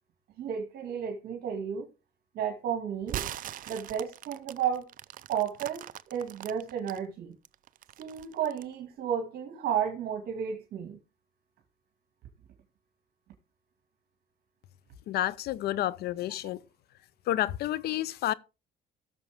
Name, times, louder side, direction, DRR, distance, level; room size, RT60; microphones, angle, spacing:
voice 1, 0.4-1.9 2.3-3.2 3.7-4.9 5.3-5.8 6.1-7.3 8.0-11.0, right 8 dB, 70° right, 2.2 m, -32 dB
sound 1, 3.0-7.0 7.4-8.7, right 12 dB, 55° right, 0.5 m, -40 dB
voice 2, 15.1-16.6 17.3-18.3, left 13 dB, 70° left, 0.7 m, -30 dB
17.0 x 6.8 x 3.5 m
cardioid pair, 110°, 17 cm